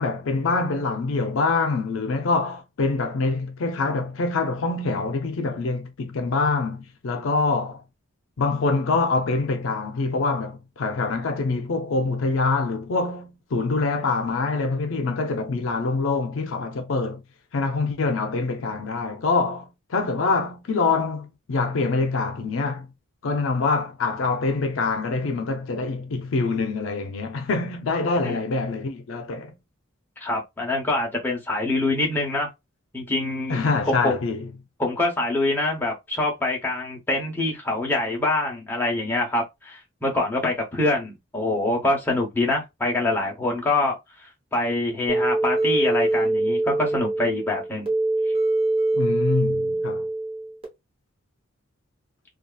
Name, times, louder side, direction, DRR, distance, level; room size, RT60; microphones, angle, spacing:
voice 1, 0.0-7.8 8.4-17.2 17.5-22.9 23.2-29.5 33.5-34.5 48.9-50.1, left 3 dB, 75° left, 0.5 m, -25 dB
voice 2, 30.2-32.5 32.9-33.6 33.9-34.1 34.8-44.0 44.5-47.9, left 2 dB, 10° left, 0.8 m, -25 dB
sound 1, 45.1-50.7, right 2 dB, 30° right, 0.8 m, -24 dB
2.7 x 2.3 x 2.3 m
head